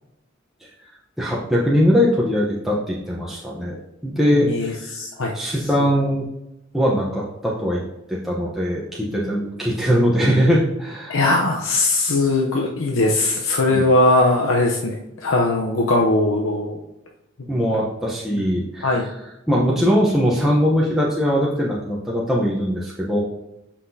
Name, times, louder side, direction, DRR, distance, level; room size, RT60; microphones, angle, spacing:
voice 1, 1.2-4.9 5.3-6.3 6.7-7.8 8.1-11.2 13.7-13.8 17.5-19.1 19.5-23.2, equal, ahead, -5 dB, 0.9 m, -21 dB
voice 2, 4.3-5.3 11.1-16.8 18.3-18.5 18.8-19.1, left 2 dB, 90° left, -1 dB, 0.8 m, -20 dB
8.2 x 5.7 x 2.8 m, 0.90 s
head